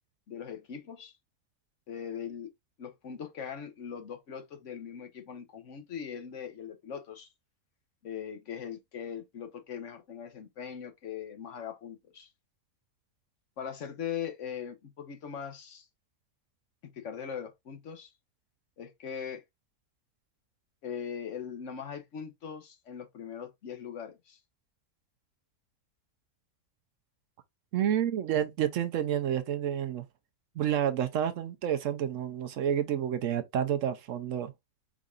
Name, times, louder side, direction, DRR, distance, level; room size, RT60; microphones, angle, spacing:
voice 1, 0.3-1.2 1.9-2.5 2.8-7.3 8.0-12.3 13.6-15.9 16.8-18.1 18.8-19.4 20.8-24.4, left 8 dB, 60° left, 1.1 m, -40 dB
voice 2, 27.7-30.0 30.6-34.5, right 10 dB, 70° right, 0.9 m, -29 dB
5.1 x 3.7 x 2.4 m
omnidirectional pair, 1.5 m